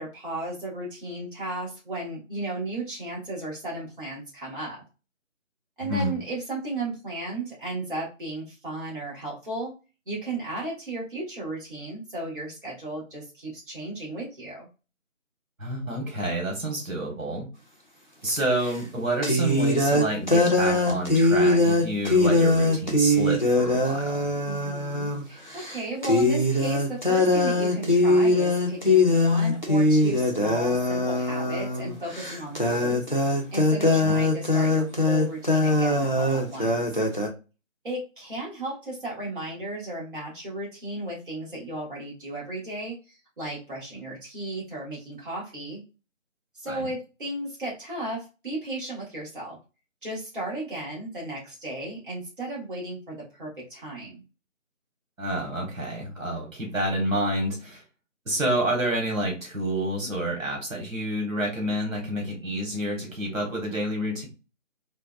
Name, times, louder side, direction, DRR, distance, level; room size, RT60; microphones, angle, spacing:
voice 1, 0.0-4.8 5.8-9.7 10.1-14.7 24.4-33.0 33.5-36.8 37.8-42.9 43.4-45.8 46.5-49.6 50.0-54.2, right 1 dB, 40° right, -5 dB, 1.4 m, -35 dB
voice 2, 5.8-6.2 15.6-17.5 18.2-24.3 34.0-34.2 46.7-46.9 55.2-57.8 58.3-64.3, right 1 dB, 85° right, 0 dB, 1.3 m, -28 dB
sound 1, 18.4-18.5 19.2-25.2 25.6-25.8 26.0-37.3, left 2 dB, 40° left, 0.4 m, -22 dB
3.4 x 2.0 x 2.2 m, 0.30 s
figure-of-eight pair, 160°, 39 cm